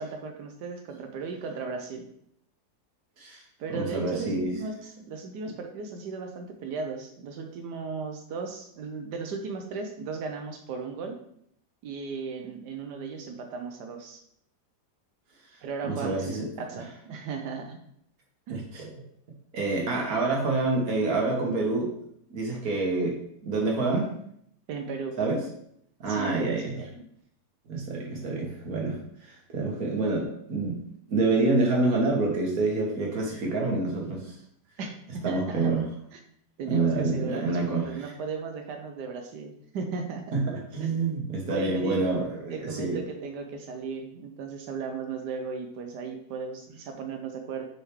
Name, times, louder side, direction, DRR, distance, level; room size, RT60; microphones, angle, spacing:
voice 1, 0.0-2.1 3.6-11.2 11.8-14.2 15.6-16.4 16.7-17.8 18.5-18.6 24.7-25.2 26.1-26.9 34.8-35.7 36.1-36.2 36.6-40.4 40.8-40.9 41.5-42.1 42.5-47.6, right 5 dB, 80° right, 4 dB, 1.3 m, -36 dB
voice 2, 3.7-4.5 15.8-16.5 18.5-18.9 19.5-21.9 22.3-24.1 25.2-25.4 26.0-26.7 27.7-30.8 31.1-34.4 35.2-35.9 36.7-38.1 40.3-43.0, right 3 dB, 60° right, 0 dB, 1.7 m, -27 dB
6.4 x 4.7 x 3.1 m, 0.70 s
omnidirectional pair, 1.8 m